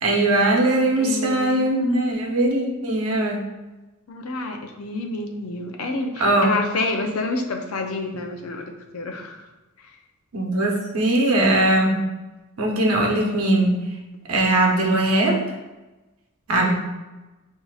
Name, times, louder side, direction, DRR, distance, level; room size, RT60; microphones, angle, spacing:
voice 1, 0.0-3.4 6.2-6.5 10.3-12.0 12.6-13.8 14.3-15.4 16.5-16.8, right 1 dB, 70° right, 0 dB, 0.8 m, -20 dB
voice 2, 1.0-2.3 4.1-9.4 16.6-16.8, left 3 dB, 75° left, 4 dB, 0.6 m, -29 dB
6.1 x 2.7 x 2.4 m, 1.1 s
head